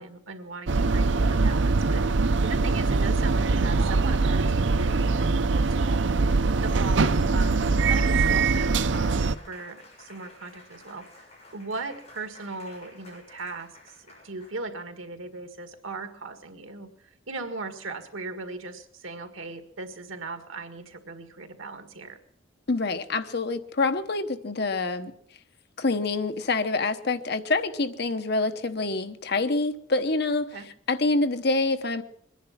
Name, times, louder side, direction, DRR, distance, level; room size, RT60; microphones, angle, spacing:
voice 1, 0.0-6.2 6.6-11.0 11.5-13.7 14.2-16.9 17.3-22.2 30.5-30.7, right 3 dB, 85° right, 7 dB, 1.9 m, -38 dB
sound 1, 0.7-9.3, right 3 dB, 60° right, 0.5 m, -23 dB
Applause, 5.5-14.7, left 2 dB, 30° left, 7.3 m, -52 dB
voice 2, 22.7-25.1 25.8-30.5 30.9-32.0, left 3 dB, 55° left, 9 dB, 1.0 m, -26 dB
23.0 x 10.5 x 5.9 m, 0.66 s
head